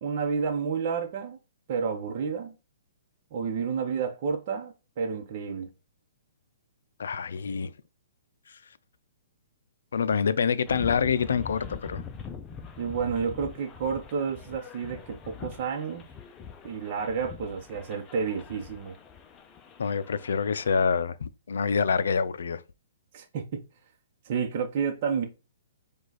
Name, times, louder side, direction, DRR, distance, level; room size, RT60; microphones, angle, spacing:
voice 1, 0.0-1.4 1.7-2.5 3.3-5.7 12.8-16.0 16.6-18.9 23.1-23.6 24.2-25.3, right 6 dB, 45° right, 0.8 m, -30 dB
voice 2, 7.0-7.7 8.5-8.6 9.9-12.0 19.8-22.6, left 6 dB, 80° left, 0.4 m, -26 dB
sound 1, 10.6-20.8, left 6 dB, 20° left, 0.6 m, -44 dB
4.9 x 2.4 x 4.0 m
hypercardioid pair, 145°, 0 cm